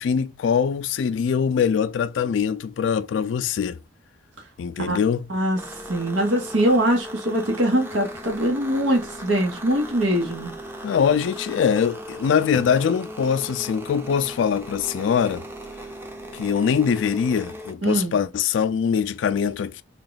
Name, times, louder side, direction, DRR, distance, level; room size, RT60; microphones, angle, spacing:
voice 1, 0.0-3.8 4.6-5.2 10.8-15.4 16.3-19.8, left 7 dB, 75° left, 0.3 m, -23 dB
voice 2, 5.3-10.5 17.8-18.1, right 1 dB, 90° right, 1.1 m, -22 dB
sound 1, 5.5-17.7, equal, 10° right, 0.5 m, -38 dB
3.6 x 2.3 x 3.9 m
head